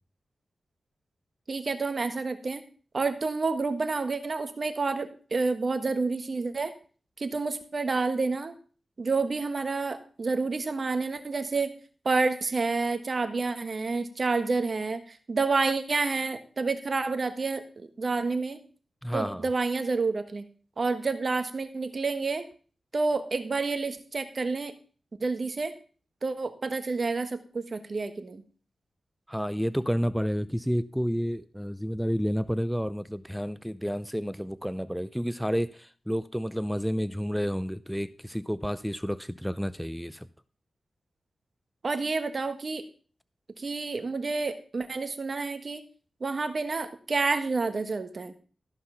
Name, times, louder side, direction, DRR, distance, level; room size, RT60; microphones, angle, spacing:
voice 1, 1.5-2.6 2.9-6.7 7.2-8.5 9.0-11.7 12.0-17.6 18.0-18.6 19.1-20.5 20.8-22.4 22.9-24.7 25.2-25.7 26.2-28.4 41.8-42.8 43.6-45.8 46.2-48.3, right 3 dB, 50° right, 9 dB, 1.3 m, -29 dB
voice 2, 19.0-19.4 29.3-40.3, equal, ahead, 16 dB, 0.5 m, -30 dB
13.5 x 5.8 x 5.7 m, 0.40 s
cardioid pair, 75°, 0 cm